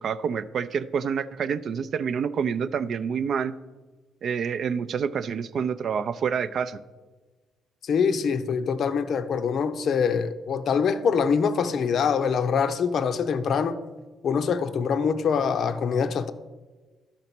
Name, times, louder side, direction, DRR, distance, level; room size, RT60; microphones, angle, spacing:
voice 1, 0.0-3.6 4.2-6.8, right 6 dB, 60° right, 0.4 m, -27 dB
voice 2, 7.8-13.8 14.2-16.3, left 6 dB, 60° left, 0.5 m, -24 dB
12.0 x 4.0 x 5.9 m
cardioid pair, 90°, 0 cm